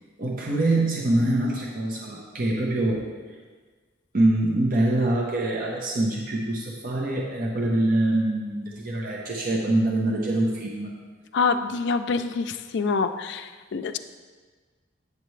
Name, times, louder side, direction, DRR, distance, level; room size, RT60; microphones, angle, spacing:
voice 1, 0.2-3.1 4.1-10.9, right 1 dB, 45° right, -2 dB, 0.7 m, -24 dB
voice 2, 11.3-14.0, left 4 dB, 60° left, 8 dB, 0.4 m, -26 dB
8.2 x 6.6 x 3.2 m, 1.4 s
head